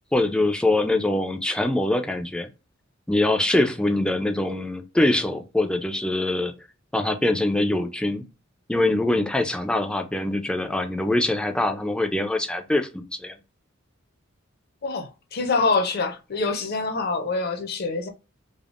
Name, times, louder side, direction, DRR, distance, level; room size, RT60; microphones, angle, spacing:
voice 1, 0.1-2.5 3.1-6.5 6.9-8.2 8.7-13.3, left 2 dB, 5° left, 0.4 m, -23 dB
voice 2, 14.8-18.1, left 3 dB, 50° left, 0.6 m, -25 dB
3.4 x 2.0 x 2.4 m
head